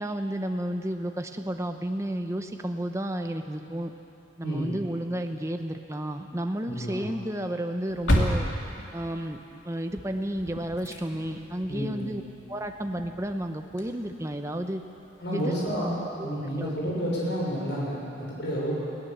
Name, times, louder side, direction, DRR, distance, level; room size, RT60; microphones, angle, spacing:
voice 1, 0.0-3.9 4.4-8.4 8.9-12.2 12.5-14.8 15.3-15.5 16.2-16.3 16.6-16.7, right 1 dB, 15° right, 5 dB, 1.0 m, -32 dB
voice 2, 4.4-4.8 6.7-7.1 11.7-12.1 15.2-18.8, equal, 65° left, -5 dB, 6.4 m, -30 dB
sound 1, 7.9-14.7 15.0-15.1 15.4-15.5, equal, 80° left, 2.6 m, -31 dB
20.5 x 17.5 x 7.3 m, 2.7 s
head